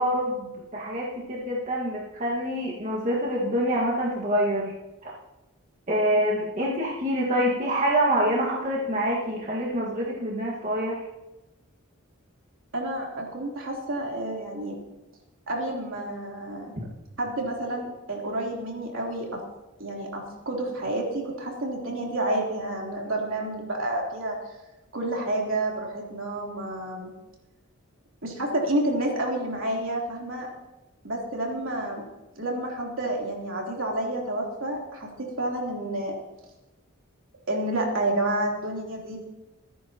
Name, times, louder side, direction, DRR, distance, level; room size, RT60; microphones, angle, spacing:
voice 1, 0.0-4.7 5.0-5.1 5.9-11.0 16.8-16.9, equal, 35° right, -4 dB, 1.8 m, -26 dB
voice 2, 12.7-14.8 15.5-16.7 17.2-19.4 19.8-24.4 24.9-27.1 28.2-30.5 31.0-32.0 32.4-36.1 37.5-39.2, right 1 dB, 65° right, -2 dB, 3.5 m, -29 dB
24.5 x 10.0 x 3.0 m, 1.0 s
head